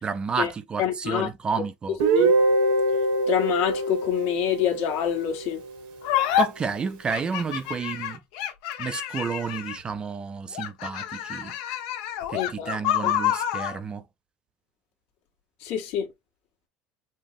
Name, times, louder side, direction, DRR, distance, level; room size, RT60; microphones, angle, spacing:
voice 1, 0.0-2.0 6.4-8.2 8.8-11.5 12.3-14.0, right 5 dB, 20° right, 0.4 m, -30 dB
voice 2, 0.8-1.3 2.2-2.3 3.3-5.6 12.3-12.7 13.0-13.1 15.6-16.1, left 10 dB, 60° left, 1.5 m, -26 dB
Guitar, 2.0-5.8, right 2 dB, 85° right, 1.3 m, -24 dB
sound 1, 6.0-6.5 7.1-9.9 10.5-13.8, left 12 dB, 75° left, 0.9 m, -28 dB
5.1 x 2.0 x 3.5 m
cardioid pair, 155°, 4 cm